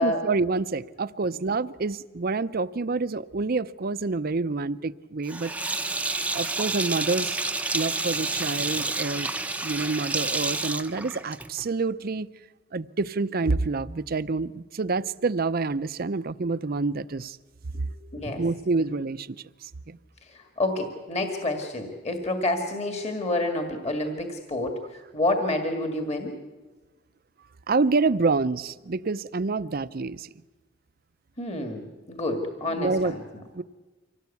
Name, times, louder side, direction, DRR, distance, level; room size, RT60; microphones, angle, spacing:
voice 1, 0.0-5.8 6.3-7.4 7.7-9.3 9.6-12.3 12.7-17.4 18.3-19.4 19.6-20.0 27.7-30.3 32.7-33.1 33.5-33.6, right 3 dB, 50° right, 15 dB, 0.6 m, -27 dB
Sink (filling or washing), 5.3-11.7, right 2 dB, 10° right, 0.7 m, -29 dB
voice 2, 18.1-18.4 20.2-26.4 31.4-33.2, left 1 dB, 35° left, 5 dB, 2.0 m, -28 dB
25.0 x 17.5 x 8.4 m, 1.2 s
head